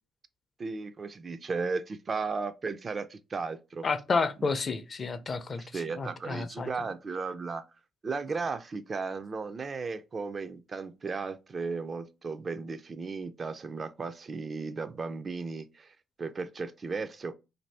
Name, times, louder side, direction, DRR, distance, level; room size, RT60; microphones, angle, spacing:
voice 1, 0.6-3.9 5.6-7.6 8.0-17.3, right 4 dB, 40° right, 0.3 m, -35 dB
voice 2, 3.8-6.7, left 4 dB, 40° left, 0.4 m, -31 dB
2.6 x 2.6 x 3.2 m
cardioid pair, 90°, 0 cm